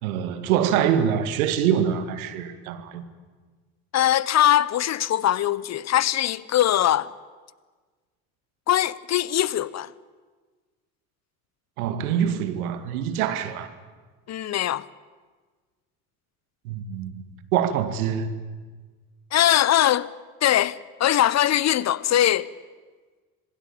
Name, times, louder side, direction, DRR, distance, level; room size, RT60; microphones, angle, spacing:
voice 1, 0.0-3.0 11.8-13.7 16.6-17.2 17.5-18.3, right 9 dB, 75° right, 2.2 m, -24 dB
voice 2, 3.9-7.1 8.7-9.9 14.3-14.8 19.3-20.1 20.4-22.5, left 12 dB, 40° left, 1.0 m, -21 dB
26.5 x 20.5 x 8.8 m
hypercardioid pair, 60°, 43 cm